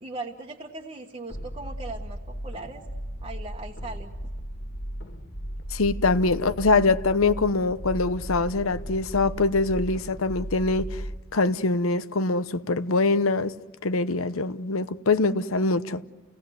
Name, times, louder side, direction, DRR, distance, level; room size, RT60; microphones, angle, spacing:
voice 1, 0.0-2.8 3.2-4.1, right 2 dB, 25° right, 1.4 m, -39 dB
sound 1, 1.3-11.2, equal, 55° left, 2.1 m, -36 dB
voice 2, 5.7-11.0 11.3-13.5 13.8-16.1, left 3 dB, 80° left, 0.9 m, -23 dB
29.5 x 18.5 x 9.5 m
head